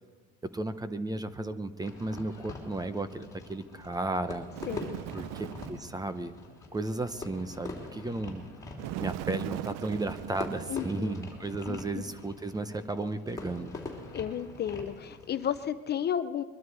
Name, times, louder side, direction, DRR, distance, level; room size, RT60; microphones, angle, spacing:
voice 1, 0.5-4.4 5.1-6.4 6.7-8.4 9.0-13.7, right 2 dB, 10° right, 12 dB, 0.7 m, -34 dB
Fireworks, 1.8-15.7, left 2 dB, 10° left, 3.3 m, -44 dB
Bird, 4.5-5.9 8.8-11.3, right 15 dB, 55° right, 0.5 m, -39 dB
voice 2, 4.7-5.0 10.7-11.1 11.7-11.8 14.1-16.4, left 9 dB, 30° left, 11 dB, 0.6 m, -32 dB
22.5 x 12.5 x 4.8 m, 1.4 s
supercardioid pair, 125°, 33 cm